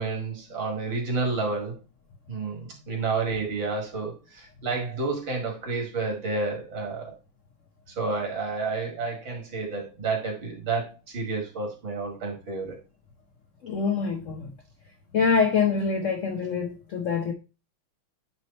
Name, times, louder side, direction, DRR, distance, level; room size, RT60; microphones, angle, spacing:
voice 1, 0.0-1.8 2.3-7.1 8.0-12.8, right 4 dB, 65° right, 2.7 m, -30 dB
voice 2, 13.6-14.5 15.1-17.3, left 5 dB, 75° left, 0.7 m, -25 dB
9.6 x 3.2 x 4.1 m
omnidirectional pair, 2.3 m